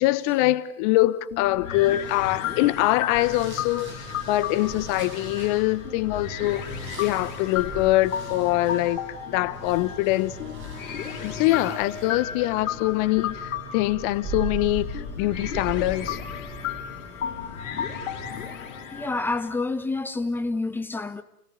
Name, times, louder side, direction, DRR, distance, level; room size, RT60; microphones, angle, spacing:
voice 1, 0.0-6.6 7.0-9.0 9.3-10.4 11.2-16.2, left 17 dB, 35° left, 1.0 m, -24 dB
sound 1, 1.3-19.5, left 9 dB, 55° left, 4.7 m, -35 dB
sound 2, 1.7-18.8, right 1 dB, 25° right, 7.4 m, -39 dB
voice 2, 18.9-21.2, left 3 dB, 5° left, 1.0 m, -28 dB
29.5 x 17.5 x 8.9 m
figure-of-eight pair, 110°, 44 cm